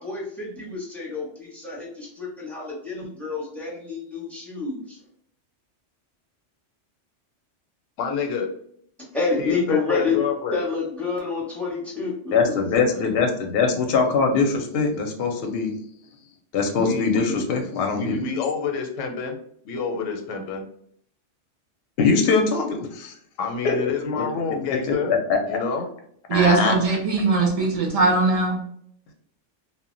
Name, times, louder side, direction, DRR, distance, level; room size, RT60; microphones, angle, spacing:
voice 1, 0.0-5.0 9.1-10.2 10.5-13.1, left 4 dB, ahead, -3 dB, 0.7 m, -28 dB
voice 2, 8.0-8.5 9.4-10.6 16.8-17.5 17.9-19.4 19.6-20.6 23.4-25.1 25.5-25.9, left 5 dB, 90° left, 3 dB, 1.0 m, -28 dB
voice 3, 12.3-15.7 16.5-18.2 22.0-23.2 23.6-24.2 24.9-25.6 26.3-26.8, left 4 dB, 65° left, 3 dB, 0.7 m, -22 dB
voice 4, 26.3-28.6, right 3 dB, 45° right, 0 dB, 0.5 m, -20 dB
2.1 x 2.1 x 3.7 m, 0.66 s
omnidirectional pair, 1.2 m